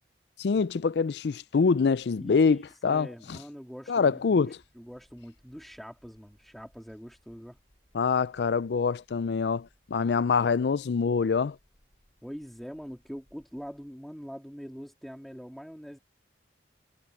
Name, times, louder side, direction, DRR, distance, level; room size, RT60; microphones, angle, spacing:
voice 1, 0.4-3.1 3.9-4.6 7.9-11.6, left 5 dB, 70° left, 0.4 m, -25 dB
voice 2, 2.2-7.6 12.2-16.0, equal, ahead, 2.0 m, -43 dB
sound 1, 4.6-13.9, equal, 45° left, 7.4 m, -66 dB
head